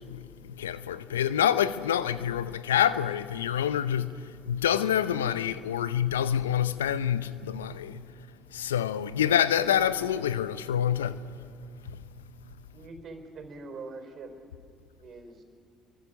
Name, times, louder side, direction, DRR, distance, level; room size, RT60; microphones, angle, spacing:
voice 1, 0.0-8.1 8.5-11.2, left 9 dB, 85° left, 0.7 m, -27 dB
voice 2, 12.7-14.3 15.0-15.4, right 3 dB, 45° right, 4.5 m, -43 dB
28.5 x 23.5 x 6.5 m
hypercardioid pair, 60°, 0 cm